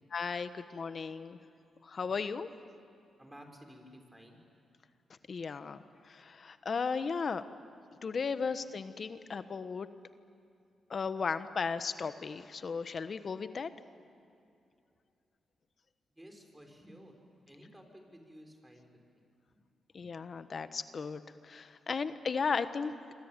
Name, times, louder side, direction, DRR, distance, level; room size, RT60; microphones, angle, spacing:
voice 1, 0.1-1.4 1.8-2.5 5.3-7.4 8.0-9.9 10.9-13.7 19.9-22.9, left 5 dB, 50° left, 11 dB, 1.2 m, -35 dB
voice 2, 3.2-4.4 8.4-8.6 16.2-17.2 17.5-19.2 20.0-20.1, equal, 15° right, 3 dB, 6.0 m, -54 dB
27.0 x 24.5 x 9.1 m, 2.6 s
cardioid pair, 65°, 0 cm